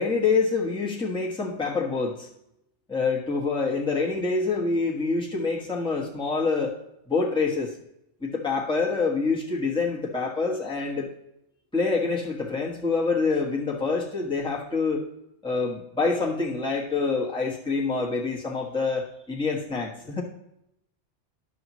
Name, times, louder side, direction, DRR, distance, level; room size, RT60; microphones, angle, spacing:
voice 1, 0.0-2.3 2.9-6.8 7.1-7.7 8.2-11.1 11.7-15.0 15.4-20.2, left 4 dB, 5° left, -3 dB, 1.2 m, -26 dB
11.0 x 7.0 x 3.0 m, 0.80 s
omnidirectional pair, 1.2 m